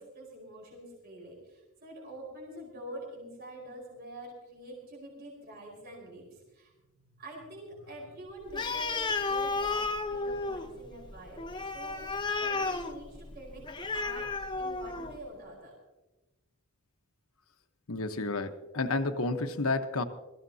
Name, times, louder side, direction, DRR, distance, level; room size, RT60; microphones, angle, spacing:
voice 1, 0.0-12.0 12.4-14.3 14.6-15.8, right 1 dB, 45° right, -2 dB, 4.8 m, -46 dB
Animal, 8.5-15.2, left 3 dB, 20° left, 0.9 m, -33 dB
voice 2, 17.9-20.0, left 3 dB, 75° left, 7 dB, 1.1 m, -31 dB
23.5 x 15.0 x 2.8 m, 1.1 s
head